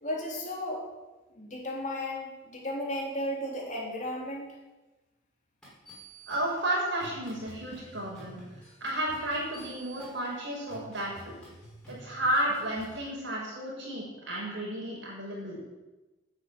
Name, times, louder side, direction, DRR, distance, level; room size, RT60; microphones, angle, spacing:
voice 1, 0.0-0.8 1.3-4.5, left 1 dB, 35° left, -2 dB, 3.2 m, -34 dB
sound 1, 5.6-13.0, right 2 dB, 5° left, 6.2 m, -50 dB
voice 2, 6.3-8.4 8.8-11.3 11.9-15.6, right 1 dB, 60° right, -3 dB, 6.2 m, -32 dB
10.5 x 9.2 x 9.0 m, 1.1 s
head